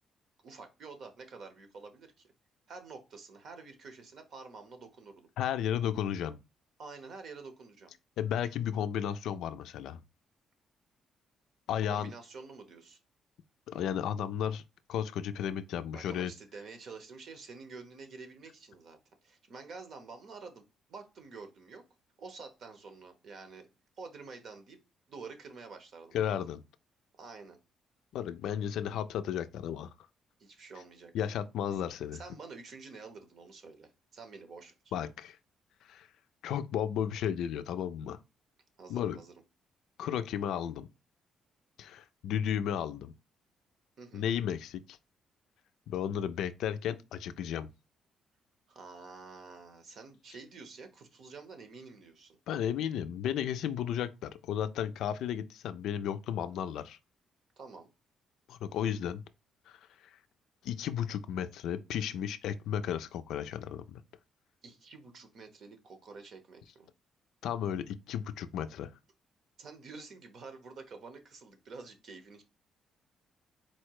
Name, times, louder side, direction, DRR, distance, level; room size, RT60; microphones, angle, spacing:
voice 1, 0.4-2.3 2.7-5.3 6.8-7.9 11.9-13.0 15.9-20.6 20.9-21.8 22.2-23.7 24.0-24.8 25.1-26.5 27.2-27.6 30.4-31.3 32.1-34.7 38.8-39.3 44.0-44.3 48.7-52.4 57.6-57.9 64.6-66.9 69.6-72.4, right 4 dB, 60° right, 0.9 m, -48 dB
voice 2, 5.4-6.4 8.2-10.0 11.7-12.1 13.7-14.6 14.9-16.3 26.1-26.6 28.1-29.9 31.1-32.2 34.9-35.4 35.9-36.1 36.4-38.2 38.9-39.2 40.0-40.9 41.8-43.1 44.1-45.0 45.9-47.7 52.5-57.0 58.5-59.2 59.7-59.8 60.6-64.0 67.4-68.9, left 9 dB, 85° left, 0.3 m, -33 dB
4.2 x 2.2 x 4.6 m
cardioid pair, 105°, 0 cm